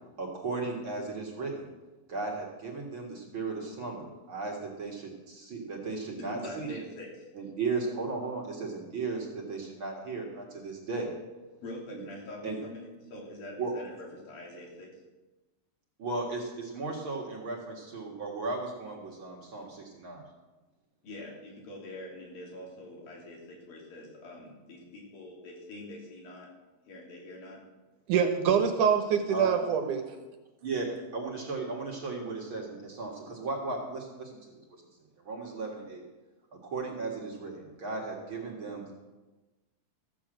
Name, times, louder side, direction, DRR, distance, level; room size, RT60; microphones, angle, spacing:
voice 1, 0.2-1.7 2.1-6.8 7.3-11.1 11.9-12.0 12.4-12.6 13.6-13.7 16.0-20.2 29.3-29.5 30.6-30.9 31.1-34.6 35.2-36.0 36.5-38.9, right 3 dB, 45° right, -1 dB, 2.1 m, -36 dB
voice 2, 6.3-7.3 11.6-15.0 21.0-26.5 26.9-27.6, left 1 dB, 85° left, -2 dB, 4.9 m, -44 dB
voice 3, 28.1-30.1, right 7 dB, 70° right, 5 dB, 2.4 m, -25 dB
15.0 x 7.1 x 7.6 m, 1.2 s
omnidirectional pair, 4.0 m